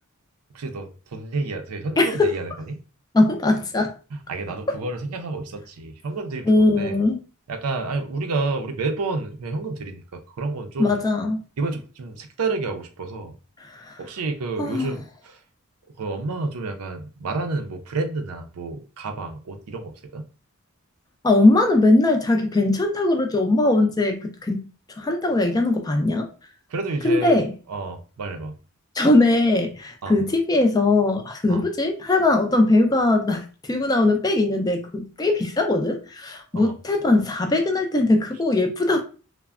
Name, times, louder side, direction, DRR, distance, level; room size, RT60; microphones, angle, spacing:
voice 1, 0.5-2.8 4.1-7.0 7.5-10.9 11.6-13.3 14.0-15.4 16.0-20.3 26.7-27.4 27.7-28.6 30.0-30.2 31.5-31.6 36.5-36.7, right 3 dB, 85° right, 0.5 m, -30 dB
voice 2, 2.0-2.3 3.1-3.9 4.7-4.8 6.5-7.2 10.8-11.4 13.6-14.0 14.6-14.9 21.2-24.7 25.0-26.3 27.0-27.5 29.0-39.0, left 2 dB, 15° left, 0.3 m, -20 dB
3.2 x 2.0 x 2.3 m
head